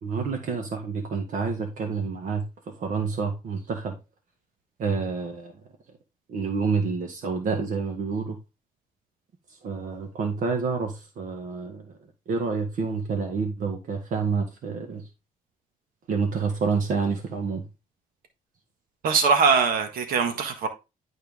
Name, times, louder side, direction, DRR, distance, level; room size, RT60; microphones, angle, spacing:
voice 1, 0.0-4.0 4.8-5.6 6.3-8.4 9.6-11.9 12.3-15.0 16.1-17.6, right 5 dB, 65° right, 1.7 m, -28 dB
voice 2, 19.0-20.7, right 5 dB, 85° right, 1.6 m, -22 dB
11.5 x 4.5 x 3.6 m
cardioid pair, 155°, 15 cm